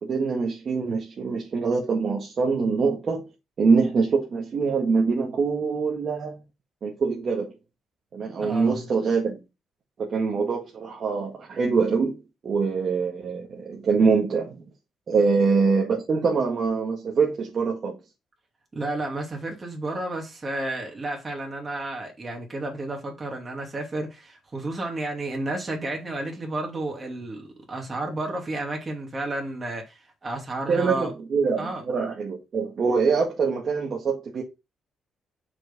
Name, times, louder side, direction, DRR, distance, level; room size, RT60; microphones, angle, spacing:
voice 1, 0.0-3.3 3.6-6.4 6.8-7.5 8.1-9.4 10.0-12.2 12.4-14.6 15.1-18.0 30.7-34.4, right 5 dB, 40° right, 1.8 m, -24 dB
voice 2, 8.4-8.8 18.7-31.1 31.6-31.8, right 2 dB, 25° right, 2.7 m, -32 dB
6.1 x 4.9 x 5.4 m
cardioid pair, 135°, 0 cm